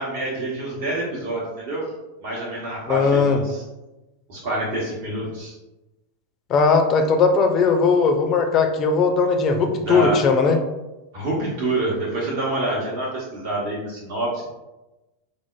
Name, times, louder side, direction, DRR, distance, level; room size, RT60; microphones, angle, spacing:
voice 1, 0.0-1.8 2.2-3.6 4.3-5.6 9.8-10.2 11.1-14.5, right 1 dB, 55° right, -5 dB, 0.8 m, -27 dB
voice 2, 2.9-3.4 6.5-10.6, left 4 dB, 35° left, 5 dB, 0.4 m, -18 dB
4.5 x 2.0 x 2.2 m, 1.0 s
figure-of-eight pair, 85°, 0 cm